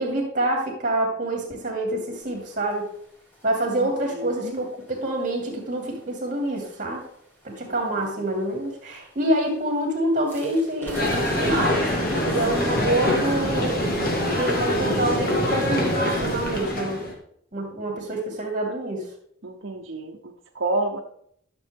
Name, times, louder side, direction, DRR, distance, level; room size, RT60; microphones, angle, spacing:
voice 1, 0.0-2.9 3.4-7.0 7.4-11.1 11.4-11.8 12.3-14.0 14.4-17.0 17.5-19.1, right 1 dB, 40° right, 1 dB, 2.8 m, -26 dB
voice 2, 3.8-4.5 7.6-8.1 19.4-21.0, right 2 dB, 75° right, -1 dB, 0.9 m, -30 dB
sound 1, 10.3-16.8, left 1 dB, 10° left, 2.4 m, -31 dB
sound 2, 10.9-17.1, left 1 dB, 50° left, 1.8 m, -25 dB
12.5 x 6.9 x 3.6 m, 0.68 s
head